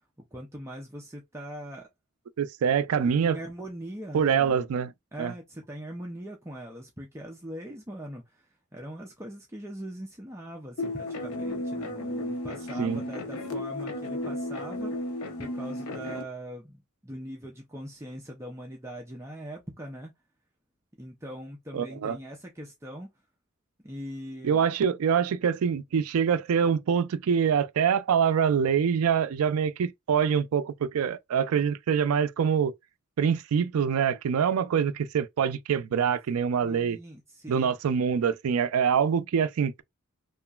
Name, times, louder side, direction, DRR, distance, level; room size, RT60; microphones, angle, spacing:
voice 1, 0.3-1.9 3.0-4.6 5.1-14.9 15.4-20.1 21.0-23.1 23.8-24.6 36.6-37.8, equal, 15° right, 0.5 m, -41 dB
voice 2, 2.4-3.4 4.1-4.9 5.2-5.3 12.8-13.0 21.7-22.2 24.4-32.7 33.2-37.0 37.5-39.8, right 7 dB, 90° right, 0.4 m, -25 dB
sound 1, 10.8-16.2, left 1 dB, 90° left, 0.6 m, -34 dB
2.9 x 2.4 x 2.3 m
head